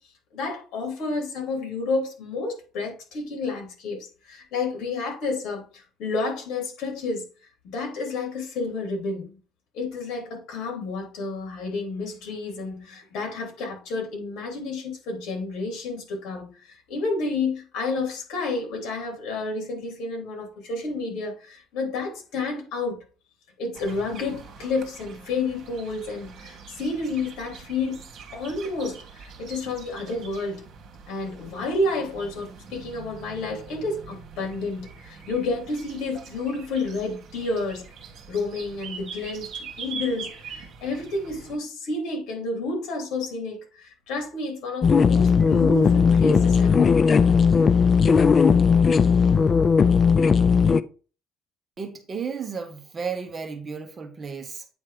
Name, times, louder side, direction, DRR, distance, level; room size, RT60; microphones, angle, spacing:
voice 1, 0.3-7.2 7.6-9.3 9.7-23.0 23.6-28.1 28.3-30.7 31.1-37.9 38.3-39.5 39.8-46.9, left 3 dB, 65° left, 3.2 m, -30 dB
sound 1, 23.7-41.6, right 5 dB, 50° right, 1.7 m, -43 dB
sound 2, 44.8-50.8, left 6 dB, 30° left, 0.4 m, -17 dB
voice 2, 51.8-54.7, right 5 dB, 25° right, 1.0 m, -33 dB
8.7 x 3.3 x 5.0 m
cardioid pair, 150°, 0 cm